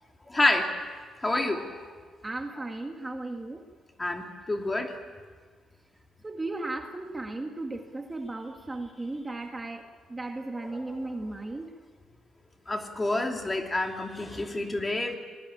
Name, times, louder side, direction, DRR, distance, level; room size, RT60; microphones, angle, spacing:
voice 1, 0.3-0.8 1.2-1.7 4.0-5.0 10.6-11.1 12.7-15.2, left 2 dB, 20° left, 3 dB, 3.1 m, -28 dB
voice 2, 2.2-3.6 6.2-11.7, right 2 dB, 20° right, 4 dB, 2.0 m, -36 dB
26.0 x 19.5 x 8.6 m, 1.5 s
cardioid pair, 90°, 0 cm